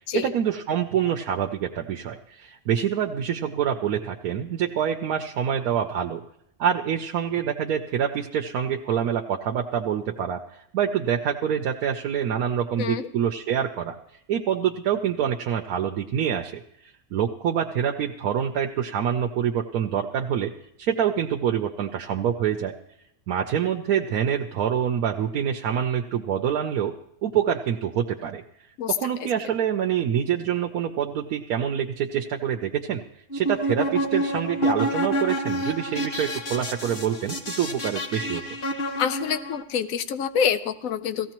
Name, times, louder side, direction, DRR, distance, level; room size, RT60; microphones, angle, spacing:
voice 1, 0.1-6.2 6.6-14.0 14.3-20.5 20.8-22.7 23.3-26.9 27.2-28.4 28.9-33.0 33.3-38.4, right 8 dB, 85° right, 3 dB, 1.1 m, -26 dB
voice 2, 12.8-13.1 28.8-28.9 29.2-29.3 39.0-41.3, left 7 dB, 75° left, 11 dB, 1.1 m, -26 dB
sound 1, 33.3-39.6, equal, 40° left, 1.4 m, -28 dB
18.0 x 15.0 x 3.0 m, 0.75 s
omnidirectional pair, 1.5 m